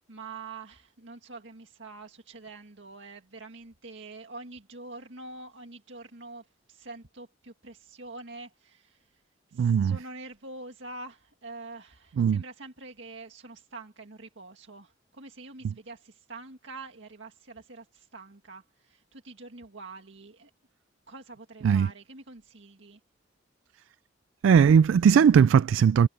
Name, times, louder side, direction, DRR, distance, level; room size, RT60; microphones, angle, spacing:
voice 1, 0.1-9.2 9.5-20.5 21.1-23.0, right 3 dB, 70° right, 2.0 m, -45 dB
voice 2, 9.6-10.0 12.2-12.4 21.6-21.9 24.4-26.1, right 7 dB, 90° right, 0.3 m, -19 dB
head